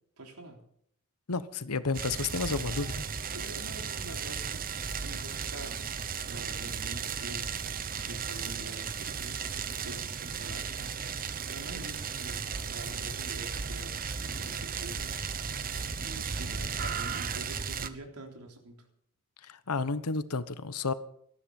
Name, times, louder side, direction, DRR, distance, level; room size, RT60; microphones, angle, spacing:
voice 1, 0.2-0.6 3.3-4.6 5.0-5.9 6.2-11.0 11.5-14.0 14.4-15.1 16.0-18.8, right 1 dB, 90° right, 3 dB, 3.6 m, -46 dB
voice 2, 1.3-3.0 19.4-20.9, left 4 dB, 90° left, 14 dB, 1.1 m, -31 dB
sound 1, 1.9-17.9, right 6 dB, 40° right, 1.0 m, -35 dB
19.0 x 13.5 x 5.4 m, 0.69 s
head